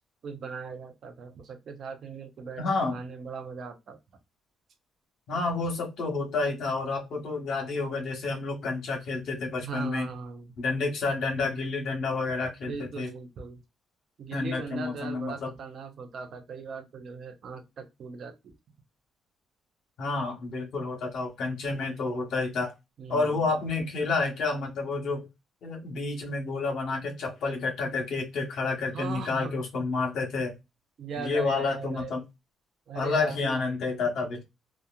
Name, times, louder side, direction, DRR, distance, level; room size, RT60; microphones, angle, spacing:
voice 1, 0.2-4.0 5.3-5.4 9.6-10.6 12.6-13.6 14.2-18.5 23.0-23.5 28.9-29.5 31.0-32.2 32.9-33.7, right 5 dB, 60° right, 7 dB, 0.6 m, -39 dB
voice 2, 2.6-3.0 5.3-10.1 10.6-13.1 14.3-15.5 20.0-22.7 23.1-25.3 25.6-30.5 31.2-32.2 32.9-34.4, left 3 dB, 70° left, 1 dB, 1.1 m, -29 dB
2.9 x 2.3 x 2.3 m, 0.22 s
cardioid pair, 90°, 0 cm